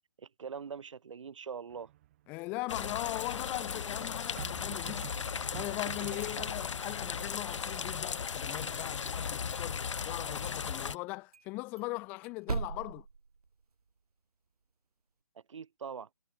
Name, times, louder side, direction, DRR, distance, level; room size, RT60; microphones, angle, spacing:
voice 1, 0.2-1.9 15.3-16.1, right 6 dB, 55° right, 1.1 m, -43 dB
sound 1, 1.7-2.3 4.4-7.0, right 14 dB, 25° right, 1.2 m, -47 dB
voice 2, 2.3-5.1 5.5-9.8 10.0-13.1, left 24 dB, 10° left, 0.5 m, -39 dB
sound 2, 2.7-11.0, left 6 dB, 55° left, 1.8 m, -37 dB
sound 3, 7.1-8.2 8.6-9.7 10.0-10.1 10.4-10.6 10.9-11.0 11.3-13.9, right 4 dB, 85° right, 1.0 m, -42 dB
hypercardioid pair, 160°, 19 cm